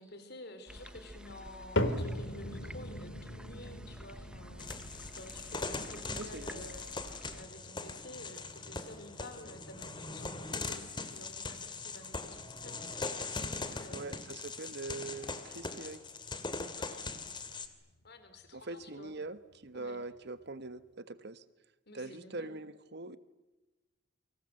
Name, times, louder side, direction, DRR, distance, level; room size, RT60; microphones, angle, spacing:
voice 1, 0.0-4.7 5.1-13.2 13.4-14.3 16.8-17.1 18.0-19.1 19.7-20.0 21.9-22.6, left 1 dB, 55° left, 8 dB, 4.4 m, -51 dB
sound 1, 0.7-7.5, equal, 5° right, 0.9 m, -50 dB
sound 2, 1.8-18.1 18.4-18.9 19.5-19.6 20.4-20.5, left 1 dB, 75° left, 2.3 m, -42 dB
sound 3, 4.6-17.7, left 3 dB, 25° left, 2.4 m, -41 dB
voice 2, 6.1-6.7 13.9-16.0 18.5-21.4 21.9-23.2, right 3 dB, 55° right, 13 dB, 1.5 m, -43 dB
29.5 x 25.0 x 7.9 m, 1.1 s
head